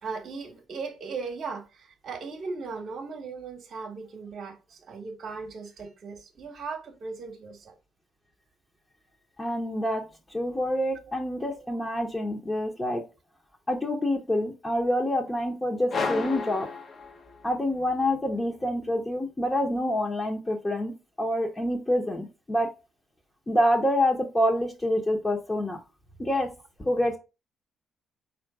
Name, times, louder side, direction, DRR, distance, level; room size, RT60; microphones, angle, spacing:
voice 1, 0.0-7.8 11.6-11.7, right 4 dB, 55° right, 0.8 m, -38 dB
voice 2, 9.4-10.0 10.3-13.0 13.7-16.7 17.4-22.7 23.5-25.8 26.2-26.5 26.8-27.2, left 1 dB, 20° left, 0.8 m, -27 dB
sound 1, 15.9-17.7, left 4 dB, 50° left, 0.8 m, -32 dB
4.3 x 2.5 x 4.6 m
cardioid pair, 90°, 0 cm